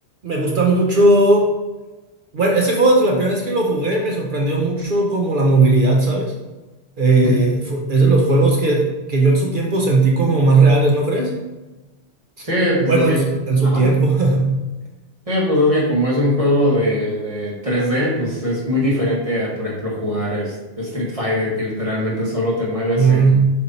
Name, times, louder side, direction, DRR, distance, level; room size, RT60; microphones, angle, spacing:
voice 1, 0.2-1.5 2.3-6.3 7.0-11.3 12.8-14.5 23.0-23.5, right 3 dB, 50° right, -1 dB, 1.0 m, -16 dB
voice 2, 12.4-13.2 13.6-13.8 15.3-23.4, left 1 dB, 30° right, -6 dB, 1.7 m, -21 dB
6.8 x 3.5 x 4.1 m, 1.1 s
omnidirectional pair, 1.1 m